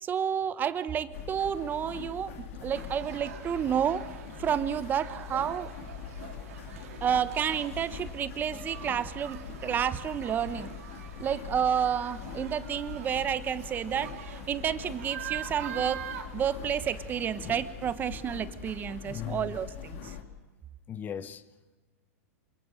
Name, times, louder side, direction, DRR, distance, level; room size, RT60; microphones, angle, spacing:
voice 1, 0.0-4.1 4.4-5.7 7.0-10.7 11.2-16.1 16.3-20.2, right 8 dB, 25° right, 1.1 m, -30 dB
sound 1, 1.1-20.2, left 7 dB, 60° left, 3.2 m, -43 dB
sound 2, 2.8-17.7, right 10 dB, 70° right, 3.5 m, -45 dB
voice 2, 19.0-19.5 20.9-21.4, left 9 dB, 20° left, 1.2 m, -38 dB
27.0 x 26.0 x 6.6 m
hypercardioid pair, 135°, 8 cm